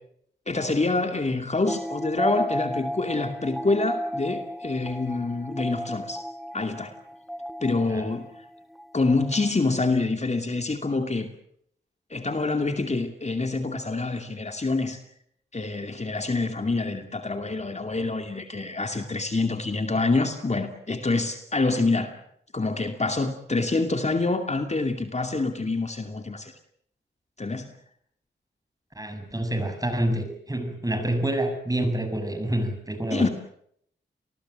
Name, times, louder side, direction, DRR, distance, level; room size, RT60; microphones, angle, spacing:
voice 1, 0.5-6.3 6.5-6.9 7.6-8.3 8.9-11.3 12.1-15.0 15.5-22.2 22.5-26.5 27.4-27.7 33.1-33.3, left 3 dB, 35° left, 6 dB, 2.6 m, -26 dB
sound 1, 1.7-9.5, equal, ahead, 0.9 m, -33 dB
voice 2, 28.9-33.3, right 1 dB, 20° right, 8 dB, 6.7 m, -27 dB
29.0 x 20.0 x 7.7 m, 0.69 s
cardioid pair, 65°, 20 cm